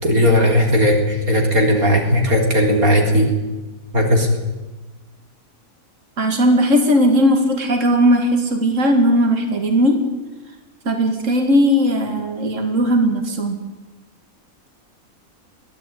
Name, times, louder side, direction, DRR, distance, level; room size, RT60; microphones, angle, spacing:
voice 1, 0.0-3.3 3.9-4.3, equal, 75° right, 2 dB, 4.3 m, -16 dB
voice 2, 6.2-10.0 10.9-13.6, equal, 60° right, 4 dB, 2.8 m, -17 dB
23.0 x 15.5 x 9.3 m, 1.1 s
omnidirectional pair, 1.5 m